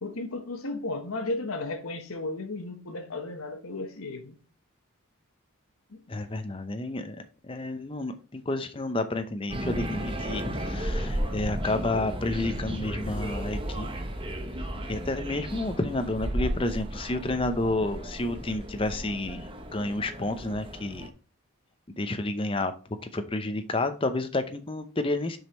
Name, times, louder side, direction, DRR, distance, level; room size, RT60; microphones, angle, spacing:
voice 1, 0.0-4.4 5.9-6.0, left 2 dB, 70° left, 1.1 m, -34 dB
voice 2, 6.1-7.2 7.4-13.9 14.7-21.1 21.9-22.7 23.1-25.4, left 2 dB, 25° left, 0.6 m, -30 dB
sound 1, 9.5-21.1, right 1 dB, 25° right, 0.8 m, -34 dB
6.4 x 5.2 x 4.2 m
head